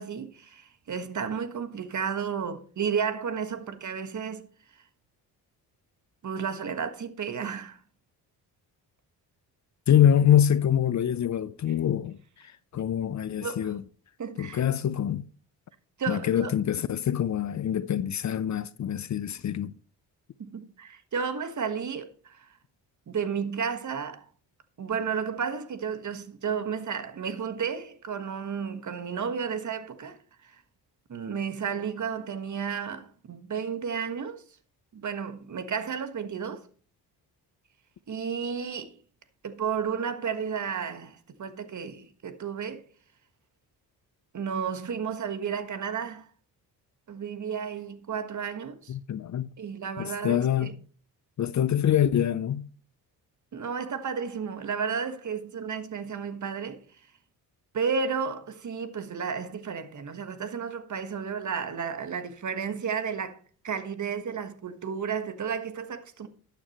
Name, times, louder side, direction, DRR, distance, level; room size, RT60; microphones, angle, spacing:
voice 1, 0.0-4.5 6.2-7.8 13.4-13.7 14.2-14.6 16.0-16.5 20.4-22.5 23.1-24.2 24.8-30.6 31.1-34.4 34.9-36.7 38.1-39.0 39.4-42.8 44.3-46.3 47.1-49.0 49.6-50.7 53.5-56.8 57.7-66.3, right 6 dB, 45° right, 1.4 m, -32 dB
voice 2, 9.9-13.8 14.4-15.3 16.1-19.7 48.9-49.5 50.0-50.7 51.4-52.7, left 10 dB, 45° left, 0.6 m, -25 dB
12.0 x 9.0 x 3.1 m
supercardioid pair, 70°, 40 cm